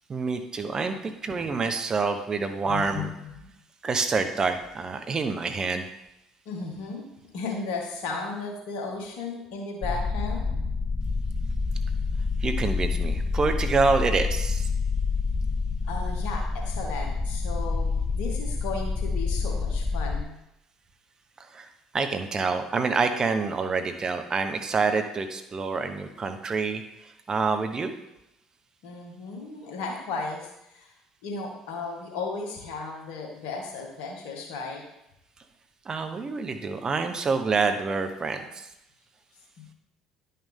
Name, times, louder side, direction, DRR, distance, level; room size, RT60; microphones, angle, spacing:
voice 1, 0.1-3.1 3.8-5.9 12.4-14.7 21.5-21.7 21.9-26.8 27.3-27.9 35.9-38.7, right 4 dB, 35° right, 7 dB, 1.0 m, -27 dB
voice 2, 2.6-3.3 6.5-7.0 7.3-10.5 15.9-20.3 28.8-30.9 31.2-34.8 39.6-39.7, left 4 dB, 65° left, 0 dB, 2.0 m, -35 dB
sound 1, 9.8-20.2, left 4 dB, 25° left, 0.8 m, -28 dB
10.5 x 5.7 x 3.6 m, 0.87 s
hypercardioid pair, 55°, 2 cm